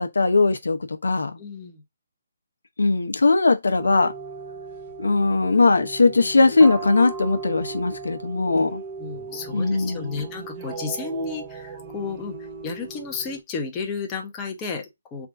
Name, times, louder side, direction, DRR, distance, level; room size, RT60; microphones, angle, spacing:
voice 1, 0.0-1.3 2.8-4.1 5.0-8.7 9.5-10.2, left 3 dB, 90° left, 0.7 m, -19 dB
voice 2, 1.4-1.8 8.3-8.6 9.0-15.3, left 4 dB, 15° left, 0.8 m, -33 dB
sound 1, 3.8-13.4, right 5 dB, 25° right, 0.7 m, -37 dB
3.5 x 2.5 x 3.6 m
hypercardioid pair, 160°, 0 cm